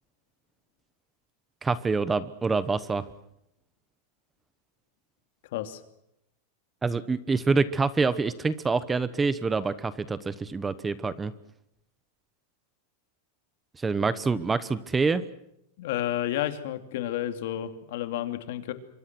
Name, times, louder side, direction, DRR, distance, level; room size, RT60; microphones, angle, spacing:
voice 1, 1.6-3.1 6.8-11.3 13.8-15.2, right 4 dB, 10° right, 16 dB, 0.9 m, -26 dB
voice 2, 15.8-18.7, left 12 dB, 65° left, 9 dB, 2.7 m, -31 dB
25.5 x 24.5 x 6.1 m, 0.81 s
supercardioid pair, 150°, 0 cm